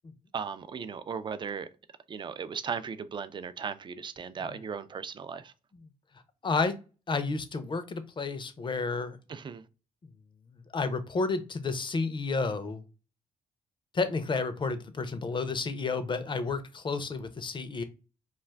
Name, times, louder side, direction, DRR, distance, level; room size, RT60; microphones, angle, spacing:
voice 1, 0.3-1.7 2.1-5.5 9.3-9.6, right 6 dB, 35° right, 0.3 m, -37 dB
voice 2, 6.4-6.8 7.1-9.2 10.5-12.8 13.9-17.8, left 4 dB, 35° left, 0.5 m, -31 dB
2.4 x 2.3 x 3.2 m
cardioid pair, 70°, 14 cm